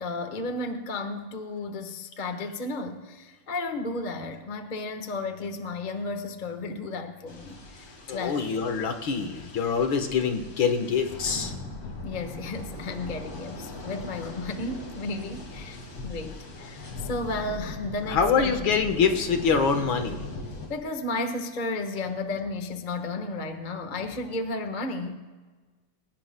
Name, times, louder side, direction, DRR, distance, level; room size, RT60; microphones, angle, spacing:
voice 1, 0.0-7.8 8.1-8.5 12.0-18.6 20.7-25.2, left 2 dB, 30° left, 6 dB, 1.1 m, -33 dB
sound 1, 7.3-20.7, left 2 dB, 85° left, 3.4 m, -39 dB
voice 2, 8.1-11.5 18.1-20.2, left 6 dB, 65° left, 6 dB, 2.0 m, -25 dB
28.0 x 17.0 x 2.2 m, 1.4 s
omnidirectional pair, 2.4 m